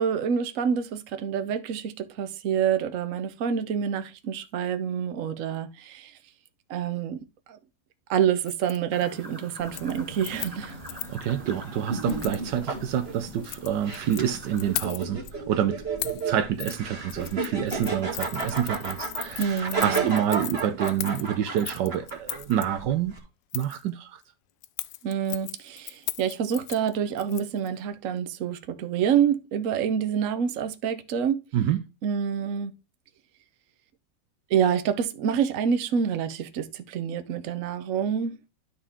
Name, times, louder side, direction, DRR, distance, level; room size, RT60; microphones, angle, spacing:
voice 1, 0.0-6.1 6.7-7.2 7.5-7.6 8.1-10.8 19.4-20.1 25.0-31.4 32.0-32.7 34.5-38.4, right 8 dB, 55° right, 1.1 m, -27 dB
Keys jangling, 8.4-8.8 9.1-9.4 9.7-11.2 12.1-12.4 13.3-14.2 14.6-15.3 16.0-16.3 16.6-16.8 17.1-22.7 23.5-23.8 24.6-27.7 28.0-28.1, left 15 dB, 80° left, 1.3 m, -37 dB
sound 1, 8.9-14.8, equal, 20° right, 2.9 m, -45 dB
sound 2, 9.6-23.2, right 4 dB, 35° right, 2.2 m, -33 dB
voice 2, 11.1-23.1 23.5-24.2 31.5-31.8, right 10 dB, 75° right, 1.2 m, -28 dB
12.0 x 4.3 x 3.6 m
omnidirectional pair, 2.0 m